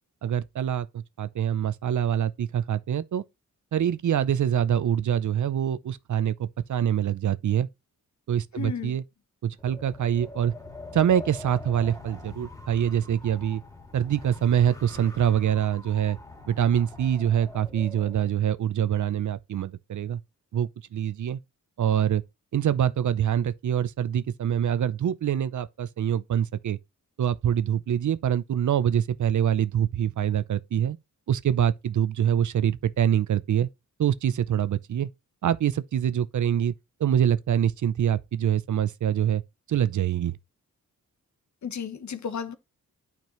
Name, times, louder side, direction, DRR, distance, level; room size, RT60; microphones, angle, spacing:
voice 1, 0.2-3.2 3.7-7.7 8.3-9.0 9.4-10.5 10.9-13.6 13.9-16.2 16.5-20.2 20.5-21.4 21.8-22.2 22.5-26.8 27.2-31.0 31.3-33.7 34.0-35.1 35.4-36.7 37.0-39.4 39.7-40.4, right 9 dB, 60° right, 0.7 m, -25 dB
voice 2, 8.6-9.0 41.6-42.6, left 6 dB, 55° left, 1.1 m, -33 dB
Wind, 9.6-18.3, left 2 dB, 10° left, 2.5 m, -44 dB
9.1 x 5.3 x 3.1 m
cardioid pair, 85°, 33 cm